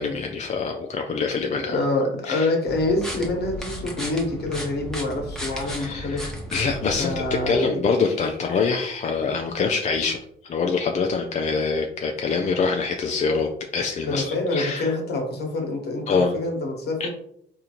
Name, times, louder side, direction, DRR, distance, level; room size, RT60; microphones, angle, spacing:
voice 1, 0.0-1.8 2.3-2.5 5.6-14.9 16.1-16.3 17.0-17.1, left 4 dB, 35° left, 3 dB, 0.4 m, -25 dB
voice 2, 1.6-6.3 7.0-7.7 14.1-17.1, left 2 dB, 55° left, 2 dB, 1.1 m, -26 dB
sound 1, 2.7-7.6, equal, ahead, 1.0 m, -35 dB
3.6 x 2.5 x 2.9 m, 0.72 s
cardioid pair, 90°, 20 cm